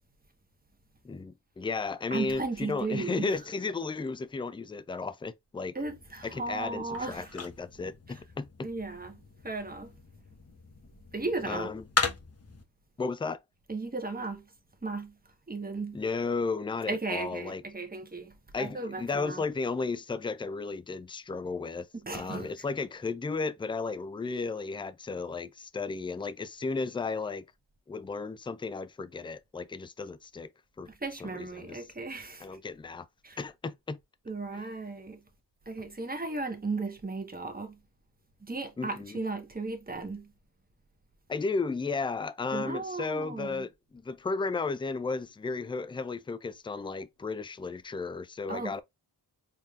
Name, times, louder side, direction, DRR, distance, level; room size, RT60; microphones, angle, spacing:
voice 1, 1.0-5.7 6.2-8.7 11.4-11.8 13.0-13.4 15.9-17.6 18.5-21.9 22.1-27.4 27.9-30.5 30.8-30.9 31.2-31.8 32.4-33.1 33.4-34.0 34.5-34.7 38.8-39.2 41.3-48.8, left 4 dB, 10° left, 0.3 m, -34 dB
voice 2, 2.1-3.3 5.7-7.3 8.6-9.9 11.1-11.7 13.7-14.4 14.8-15.1 15.5-16.0 16.9-19.4 22.0-22.5 31.0-32.5 33.2-33.4 34.3-35.2 35.7-37.8 38.4-40.3 42.5-43.7 48.5-48.8, right 3 dB, 20° right, 1.2 m, -35 dB
sound 1, 5.8-12.6, left 4 dB, 35° left, 1.1 m, -38 dB
4.2 x 3.6 x 2.4 m
cardioid pair, 65°, 44 cm